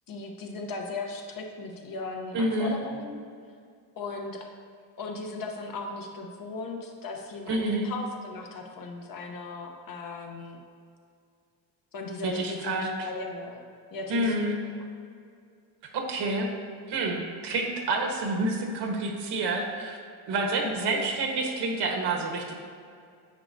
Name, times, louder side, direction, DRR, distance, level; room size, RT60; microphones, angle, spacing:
voice 1, 0.1-3.2 4.0-4.5 5.0-10.6 11.9-13.6 13.9-14.4 20.6-21.1, left 3 dB, 55° left, 2 dB, 1.1 m, -37 dB
voice 2, 2.3-2.7 7.5-7.9 12.2-13.1 14.1-14.6 15.8-16.5 16.9-20.0 20.3-22.5, right 2 dB, 80° right, 1 dB, 1.4 m, -28 dB
9.7 x 8.1 x 2.7 m, 2.3 s
cardioid pair, 170°, 40 cm